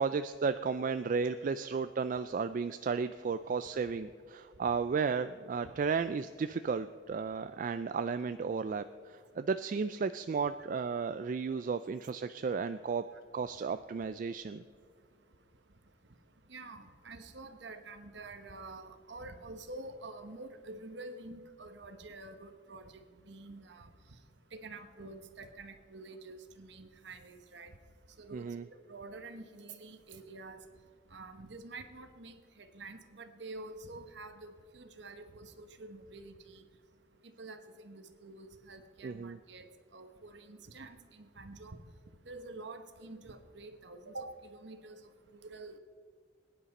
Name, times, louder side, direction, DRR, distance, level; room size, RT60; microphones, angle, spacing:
voice 1, 0.0-13.0 13.3-14.6 28.3-28.6 39.0-39.4, right 5 dB, 45° right, 11 dB, 0.3 m, -34 dB
voice 2, 16.5-22.9 23.3-23.9 24.5-27.7 28.2-28.5 28.9-30.6 31.1-36.6 37.4-39.7 39.9-41.8 42.3-45.0 45.3-45.8, right 2 dB, 65° right, 8 dB, 1.1 m, -48 dB
21.0 x 10.0 x 4.2 m, 2.1 s
head